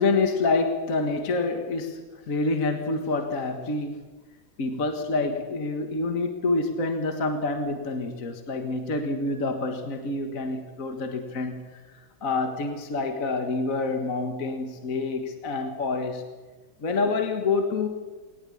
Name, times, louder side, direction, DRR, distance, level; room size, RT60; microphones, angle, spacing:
voice 1, 0.0-4.0 4.6-16.3 16.8-17.9, left 3 dB, 40° left, 5 dB, 1.9 m, -27 dB
20.5 x 19.0 x 8.6 m, 1.3 s
omnidirectional pair, 2.3 m